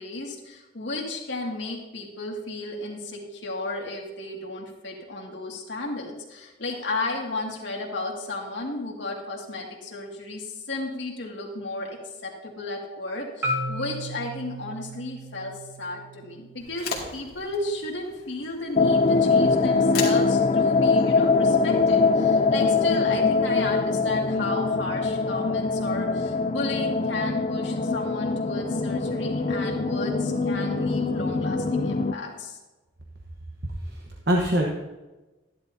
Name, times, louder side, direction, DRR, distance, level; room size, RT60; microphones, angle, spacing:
voice 1, 0.0-32.6, left 2 dB, 70° left, -1 dB, 2.1 m, -34 dB
Marimba xylophone, 13.4-17.6, equal, 15° right, 1.3 m, -35 dB
Twig Snap, 16.6-23.0, left 5 dB, 55° left, 2.2 m, -39 dB
sound 1, 18.8-32.1, left 4 dB, 35° left, 0.4 m, -23 dB
voice 2, 33.6-34.7, equal, 60° right, 0 dB, 1.1 m, -25 dB
13.5 x 11.0 x 2.7 m, 1.1 s
head